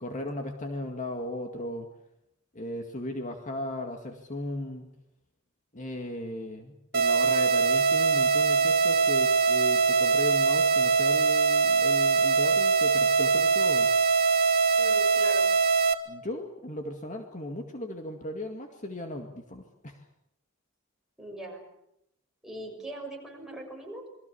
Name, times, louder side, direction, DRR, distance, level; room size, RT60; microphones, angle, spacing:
voice 1, 0.0-1.9 2.5-4.9 5.7-13.9 16.1-20.1, left 1 dB, 35° left, 4 dB, 2.1 m, -36 dB
sound 1, 6.9-15.9, right 4 dB, 50° right, 1.8 m, -22 dB
voice 2, 14.8-15.5 21.2-21.6 22.4-24.1, right 1 dB, ahead, 0 dB, 6.4 m, -40 dB
28.0 x 22.5 x 7.1 m, 0.80 s
head